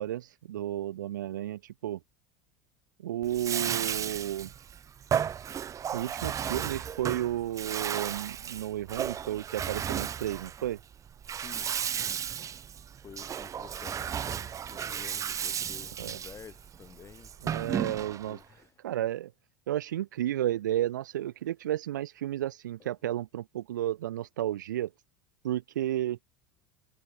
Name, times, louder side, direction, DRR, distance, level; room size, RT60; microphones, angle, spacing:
voice 1, 0.0-2.0 3.0-4.5 5.9-10.8 16.0-16.2 17.4-18.4 18.8-19.3 19.7-24.9 25.4-26.2, right 12 dB, 80° right, 1.4 m, -32 dB
Bathtub (filling or washing), 3.2-18.4, right 8 dB, 35° right, 1.4 m, -34 dB
voice 2, 11.3-12.2 13.0-17.3 18.2-18.7, left 7 dB, 30° left, 2.1 m, -51 dB
hypercardioid pair, 80°, 10 cm